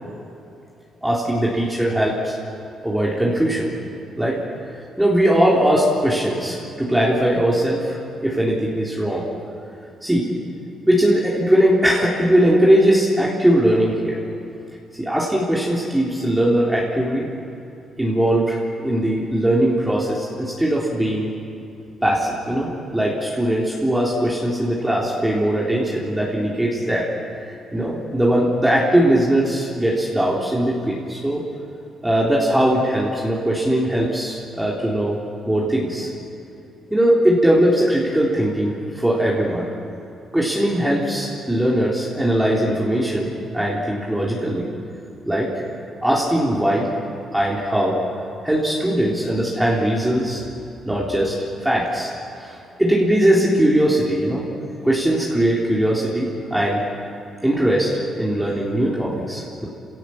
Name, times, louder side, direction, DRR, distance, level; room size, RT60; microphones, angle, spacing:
voice 1, 1.0-2.3 2.8-3.7 4.2-4.4 5.0-8.0 8.2-9.2 10.0-10.3 10.9-14.2 15.0-17.2 18.0-21.3 22.0-27.1 27.4-31.4 32.0-35.2 35.5-36.1 36.9-39.7 40.3-44.6 45.3-45.6 46.0-46.9 47.3-48.0 48.4-50.4 50.9-51.4 51.6-52.1 52.4-54.4 54.8-56.8 57.4-59.7, right 1 dB, 10° right, -5 dB, 3.9 m, -20 dB
28.0 x 17.5 x 7.4 m, 2.7 s
cardioid pair, 90°, 0 cm